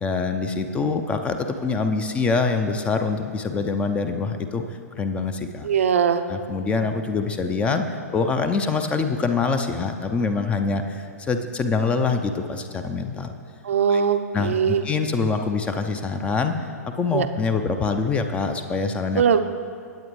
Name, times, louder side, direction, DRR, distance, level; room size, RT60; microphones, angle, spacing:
voice 1, 0.0-4.6 4.9-5.7 6.3-13.3 13.9-14.0 14.3-16.6 17.0-19.2, left 4 dB, 15° left, 7 dB, 0.5 m, -25 dB
voice 2, 5.6-6.2 13.6-14.8 17.1-17.3 19.1-19.4, right 7 dB, 55° right, 9 dB, 0.6 m, -20 dB
19.5 x 8.5 x 3.2 m, 2.3 s
figure-of-eight pair, 110°, 9 cm